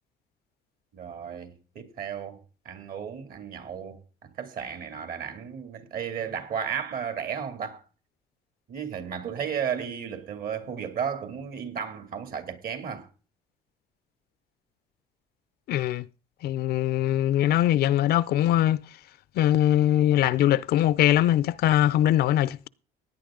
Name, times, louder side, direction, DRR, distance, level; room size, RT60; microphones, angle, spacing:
voice 1, 0.9-2.4 2.6-7.8 8.7-13.1, right 7 dB, 60° right, 2.7 m, -34 dB
voice 2, 15.7-16.1 16.4-18.8 19.4-22.7, left 12 dB, 70° left, 0.5 m, -22 dB
17.0 x 9.6 x 3.8 m
cardioid pair, 110°, 17 cm